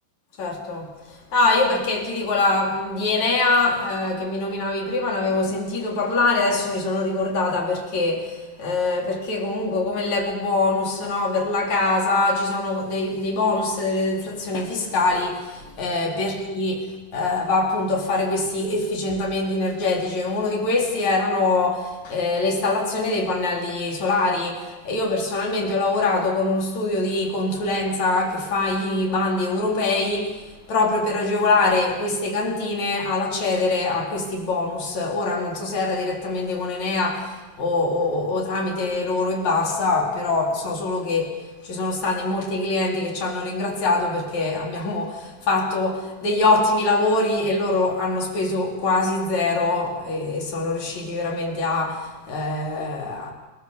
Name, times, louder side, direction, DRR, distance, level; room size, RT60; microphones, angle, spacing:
voice 1, 0.4-0.9 1.3-16.9 17.1-30.3 30.7-37.3 37.6-41.3 41.6-52.0 52.3-53.3, left 3 dB, 40° left, 0 dB, 4.8 m, -23 dB
28.0 x 20.0 x 7.2 m, 1.2 s
omnidirectional pair, 5.0 m